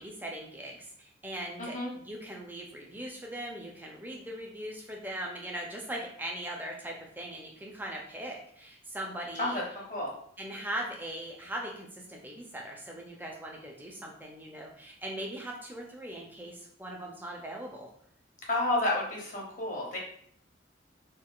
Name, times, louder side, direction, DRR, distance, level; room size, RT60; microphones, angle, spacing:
voice 1, 0.0-9.6 10.4-17.9, right 1 dB, 10° right, -1 dB, 0.4 m, -40 dB
voice 2, 1.6-1.9 9.4-9.6 9.9-10.1 18.5-20.0, left 2 dB, 40° left, -2 dB, 0.8 m, -30 dB
3.6 x 2.4 x 2.3 m, 0.63 s
head